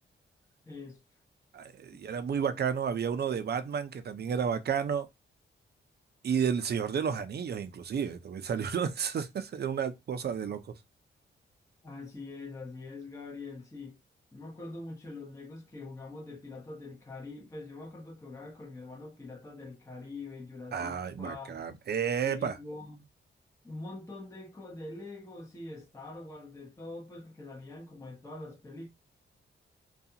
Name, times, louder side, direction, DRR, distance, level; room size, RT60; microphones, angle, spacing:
voice 1, 0.6-1.0 1.9-2.1 11.8-14.0 14.3-21.7 22.2-23.1 23.6-28.9, left 2 dB, 15° left, 0.8 m, -44 dB
voice 2, 1.5-5.1 6.2-10.6 20.7-22.6, right 7 dB, 55° right, 0.5 m, -31 dB
2.4 x 2.3 x 2.7 m
cardioid pair, 90°, 20 cm